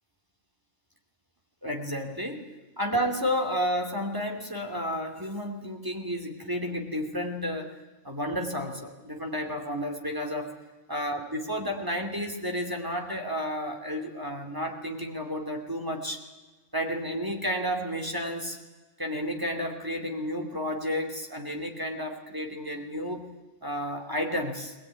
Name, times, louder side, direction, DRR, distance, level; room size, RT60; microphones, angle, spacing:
voice 1, 1.6-2.5 2.8-7.7 8.0-10.5 10.9-16.2 16.7-18.6 19.0-23.2 23.6-24.7, equal, 15° right, 2 dB, 2.7 m, -31 dB
20.0 x 20.0 x 9.7 m, 1.2 s
omnidirectional pair, 1.2 m